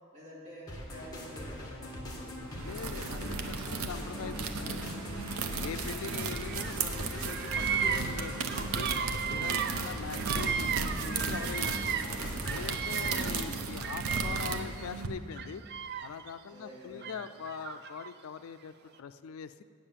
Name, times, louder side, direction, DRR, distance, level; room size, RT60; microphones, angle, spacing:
voice 1, 0.1-2.4 5.8-6.0 9.6-10.0 12.7-13.4 14.0-14.6 15.7-15.8 16.5-17.1, left 1 dB, 30° right, -6 dB, 2.8 m, -50 dB
sound 1, 0.7-13.6, equal, 20° left, 1.4 m, -41 dB
sound 2, 2.4-15.1, right 4 dB, 80° right, 0.8 m, -36 dB
voice 2, 2.5-5.0 5.5-8.9 9.3-11.9 12.3-15.6 16.0-19.6, left 6 dB, 70° left, 12 dB, 0.4 m, -43 dB
Bird vocalization bird call bird song, 6.1-6.8 7.1-12.2 12.4-14.9 15.3-16.3 17.0-18.1, right 7 dB, 45° right, 0.4 m, -35 dB
8.6 x 7.4 x 7.3 m, 2.3 s
head